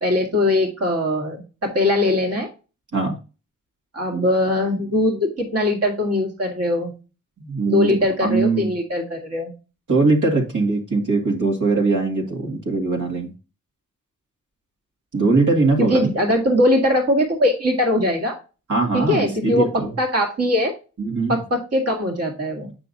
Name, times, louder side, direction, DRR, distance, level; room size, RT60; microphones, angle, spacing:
voice 1, 0.0-2.5 3.9-6.9 7.7-9.5 15.8-18.4 18.9-19.7 20.0-20.7 21.3-22.7, left 1 dB, 50° right, 1 dB, 2.0 m, -21 dB
voice 2, 7.4-8.7 9.9-13.3 15.1-16.1 18.7-19.9 21.0-21.4, right 3 dB, 65° right, 0 dB, 2.1 m, -21 dB
9.0 x 5.9 x 2.7 m, 0.31 s
wide cardioid pair, 160°, 32 cm